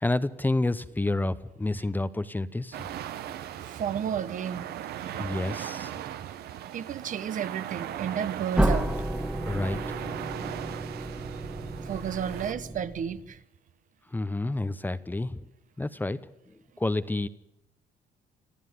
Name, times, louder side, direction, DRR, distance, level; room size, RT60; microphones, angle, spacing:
voice 1, 0.0-2.8 5.2-5.9 9.4-9.8 14.1-15.4 15.8-16.2 16.8-17.3, left 2 dB, 10° left, 0.9 m, -29 dB
sound 1, 2.7-12.5, right 11 dB, 70° right, 1.3 m, -38 dB
voice 2, 3.6-4.8 5.0-5.3 6.1-6.2 6.7-8.9 11.8-13.4, right 8 dB, 50° right, 1.2 m, -32 dB
sound 2, 8.5-13.3, right 1 dB, 5° right, 1.3 m, -31 dB
26.5 x 14.0 x 9.6 m
cardioid pair, 110°, 17 cm